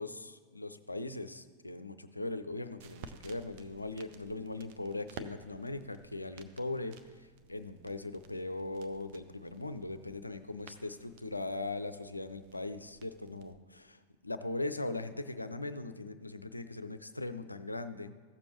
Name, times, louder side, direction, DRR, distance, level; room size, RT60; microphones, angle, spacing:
voice 1, 0.0-18.1, left 2 dB, 85° left, 11 dB, 0.4 m, -40 dB
sound 1, 2.3-13.5, right 6 dB, 45° right, 0.6 m, -55 dB
15.0 x 6.8 x 3.0 m, 1.5 s
figure-of-eight pair, 90°, 0 cm